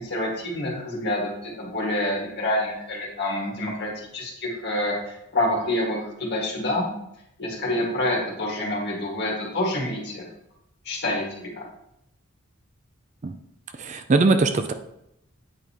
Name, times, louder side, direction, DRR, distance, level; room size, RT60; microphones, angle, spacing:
voice 1, 0.0-6.9 7.4-10.2 10.9-11.6, left 1 dB, 50° left, -2 dB, 1.9 m, -27 dB
voice 2, 13.8-14.7, right 3 dB, 35° right, 8 dB, 0.4 m, -21 dB
8.4 x 5.2 x 2.9 m, 0.80 s
head